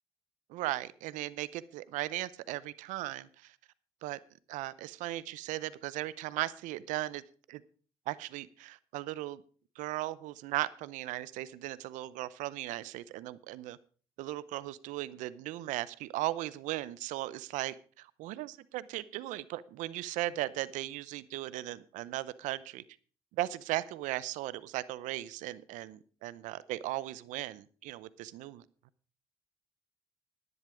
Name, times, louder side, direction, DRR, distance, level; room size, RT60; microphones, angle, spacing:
voice 1, 0.5-3.5 4.0-4.2 4.5-7.2 7.5-7.6 8.1-9.4 9.8-13.8 14.2-22.8 23.3-28.6, right 16 dB, 80° right, 18 dB, 0.6 m, -37 dB
11.0 x 10.5 x 5.0 m, 0.41 s
hypercardioid pair, 50°, 13 cm